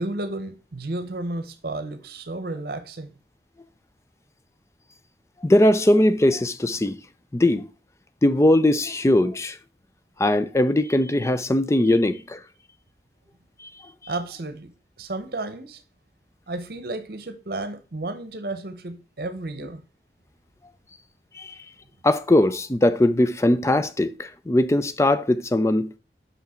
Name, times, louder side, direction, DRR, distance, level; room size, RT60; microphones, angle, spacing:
voice 1, 0.0-3.1 11.8-11.9 14.1-14.7 15.0-15.8 16.5-19.8, right 2 dB, 55° right, 0.8 m, -32 dB
voice 2, 5.4-7.0 7.3-7.7 8.2-9.6 10.2-12.4 13.6-13.7 21.3-21.5 22.0-25.9, left 1 dB, 15° left, 0.4 m, -20 dB
6.0 x 5.7 x 4.3 m
head